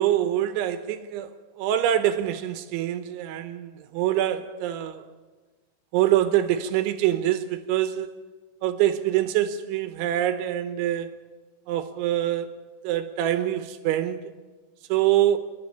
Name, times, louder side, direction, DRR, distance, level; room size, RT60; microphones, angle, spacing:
voice 1, 0.0-1.3 1.6-5.1 5.9-8.1 8.6-11.1 11.7-12.5 12.8-14.2 14.9-15.4, right 12 dB, 80° right, 3.3 m, -25 dB
29.5 x 11.5 x 8.6 m
omnidirectional pair, 5.6 m